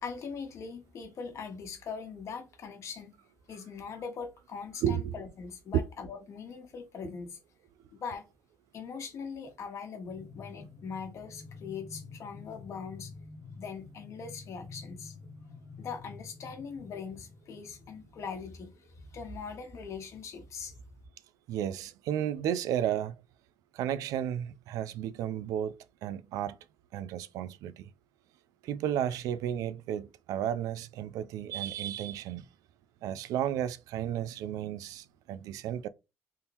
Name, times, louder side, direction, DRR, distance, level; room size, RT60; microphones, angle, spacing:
voice 1, 0.0-3.1 3.5-7.4 7.9-8.2 8.7-13.1 13.5-15.1 15.8-20.8, left 5 dB, 60° left, 1.2 m, -41 dB
voice 2, 4.8-5.1 21.5-23.1 23.7-26.6 26.9-27.9 28.6-32.4 33.0-35.9, right 10 dB, 85° right, 0.3 m, -33 dB
sound 1, 10.1-18.3, left 4 dB, 30° left, 0.9 m, -49 dB
3.7 x 2.8 x 2.6 m
cardioid pair, 100°, 6 cm